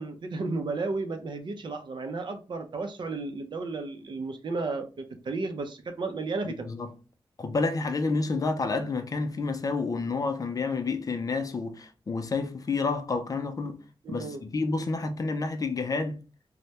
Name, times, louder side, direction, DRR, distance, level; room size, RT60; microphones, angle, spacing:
voice 1, 0.0-6.7 14.0-14.4, right 3 dB, 60° right, 0.5 m, -33 dB
voice 2, 6.4-6.9 7.4-13.8 14.1-16.2, left 3 dB, 40° left, 0.4 m, -29 dB
3.2 x 2.1 x 2.8 m
wide cardioid pair, 110°, 9 cm